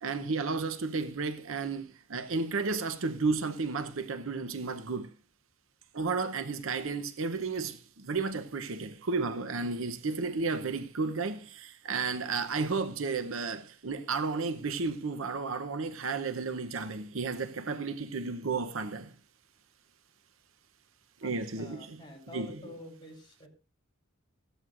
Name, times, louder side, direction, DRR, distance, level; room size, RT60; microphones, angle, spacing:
voice 1, 0.0-5.1 5.9-19.1 21.2-22.7, right 4 dB, 65° right, 0.8 m, -33 dB
voice 2, 21.6-23.5, left 1 dB, 20° left, 3.5 m, -48 dB
15.5 x 12.5 x 2.5 m
head